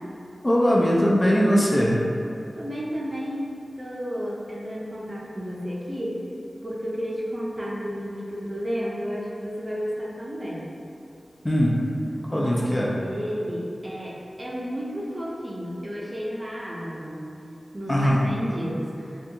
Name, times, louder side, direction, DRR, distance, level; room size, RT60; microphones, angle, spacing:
voice 1, 0.4-2.0 11.4-11.8 12.3-12.9 17.9-18.2, equal, 25° left, -4 dB, 0.3 m, -20 dB
voice 2, 2.5-6.2 6.6-10.7 12.3-17.3 17.7-19.2, equal, 30° right, -5 dB, 0.5 m, -32 dB
2.6 x 2.3 x 2.7 m, 2.6 s
wide cardioid pair, 65°, 0 cm